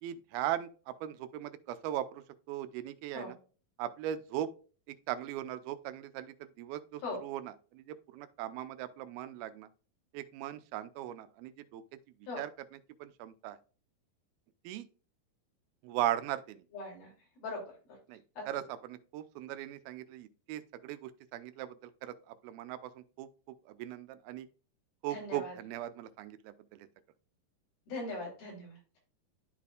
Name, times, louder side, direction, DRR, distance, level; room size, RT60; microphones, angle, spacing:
voice 1, 0.0-3.4 3.8-4.5 4.9-9.7 10.1-11.8 12.4-13.6 14.6-14.9 15.8-16.6 18.1-23.3 23.7-24.5 25.0-26.9, right 12 dB, 85° right, 2.5 m, -39 dB
voice 2, 16.7-17.1 17.4-17.6 18.4-18.5 25.1-25.5 27.9-28.8, left 2 dB, 75° left, 4.8 m, -40 dB
12.5 x 4.2 x 2.4 m
omnidirectional pair, 4.3 m